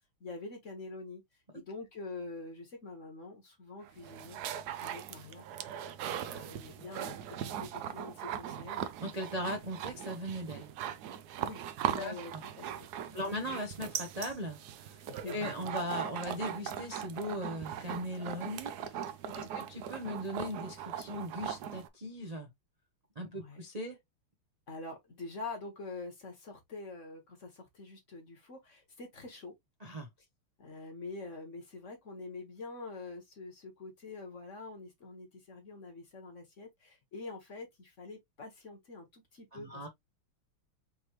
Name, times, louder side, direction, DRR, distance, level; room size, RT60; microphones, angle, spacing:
voice 1, 0.2-1.2 1.5-4.4 4.8-5.4 6.2-8.9 11.4-11.6 11.9-12.8 13.1-13.6 15.1-15.5 23.3-23.6 24.7-29.5 30.6-39.8, left 3 dB, 40° left, 1.5 m, -45 dB
sound 1, 3.8-21.9, right 10 dB, 80° right, 0.9 m, -40 dB
voice 2, 9.0-10.7 12.0-12.4 13.1-19.1 19.3-22.5 23.2-24.0 29.8-30.1 39.5-39.9, equal, 60° right, 0.4 m, -39 dB
5.4 x 3.0 x 3.0 m
omnidirectional pair, 2.4 m